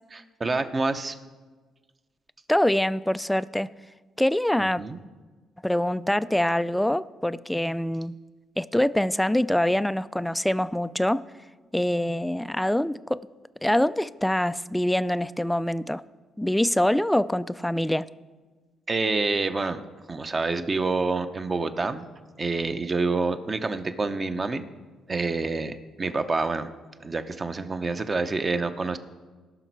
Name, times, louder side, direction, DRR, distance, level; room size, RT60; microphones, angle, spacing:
voice 1, 0.1-1.2 4.8-5.0 18.9-19.8 20.1-22.0 22.4-24.7 25.1-26.7 27.0-29.0, right 3 dB, 30° right, 9 dB, 0.7 m, -27 dB
voice 2, 2.5-3.7 4.2-4.8 5.6-8.1 8.6-11.2 11.7-13.2 13.6-16.0 16.4-18.1, left 1 dB, 5° left, 15 dB, 0.3 m, -24 dB
17.5 x 5.9 x 4.6 m, 1.4 s
cardioid pair, 90°, 0 cm